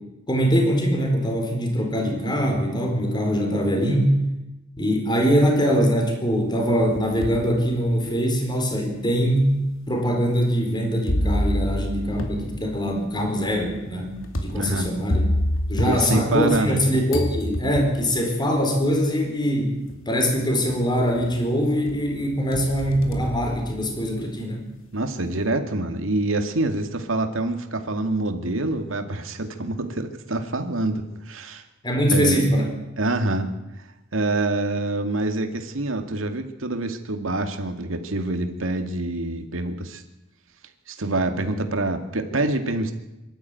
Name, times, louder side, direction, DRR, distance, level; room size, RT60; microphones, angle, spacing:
voice 1, 0.3-4.2 4.8-14.1 14.4-15.2 15.7-19.8 20.1-24.7 31.8-32.6, equal, 20° left, 3 dB, 4.4 m, -22 dB
sound 1, 6.6-7.5 8.1-8.2 9.1-9.2 11.1-16.8 17.1-18.1 19.3-19.4 19.9-20.3 20.7-21.5 21.9-24.2, equal, 80° left, 2.7 m, -28 dB
voice 2, 14.6-14.9 15.8-16.8 24.9-31.6 32.1-32.4 33.0-33.5 34.1-40.0 40.9-42.9, right 2 dB, 90° right, 6 dB, 2.1 m, -26 dB
24.0 x 12.5 x 9.1 m, 0.99 s
head